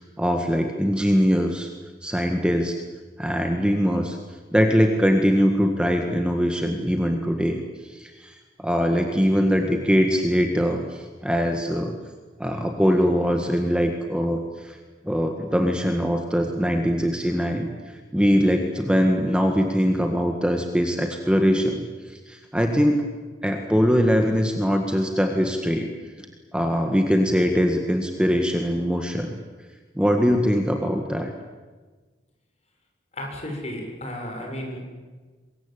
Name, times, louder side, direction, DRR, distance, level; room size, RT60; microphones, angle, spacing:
voice 1, 0.0-1.7 2.0-2.7 3.2-4.2 4.5-11.9 12.4-14.8 15.0-17.7 18.1-23.0 23.4-25.9 26.2-26.3 26.5-29.4 29.9-31.3, equal, 5° right, 4 dB, 1.7 m, -22 dB
voice 2, 33.1-34.9, left 1 dB, 40° left, 1 dB, 6.8 m, -33 dB
24.0 x 22.0 x 8.8 m, 1.4 s
head